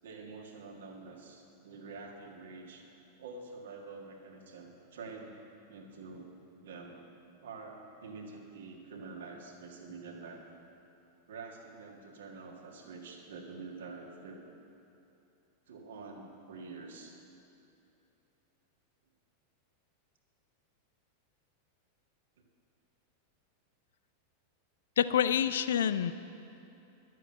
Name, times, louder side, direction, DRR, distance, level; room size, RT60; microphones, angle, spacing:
voice 1, 0.0-2.8 3.2-5.3 5.7-6.3 6.6-7.0 7.4-10.4 11.3-14.4 15.7-17.2 22.4-22.5, right 4 dB, 60° right, 1 dB, 1.7 m, -47 dB
voice 2, 25.0-26.1, left 9 dB, 60° left, 14 dB, 0.4 m, -27 dB
12.0 x 7.6 x 7.7 m, 2.9 s
figure-of-eight pair, 90°, 0 cm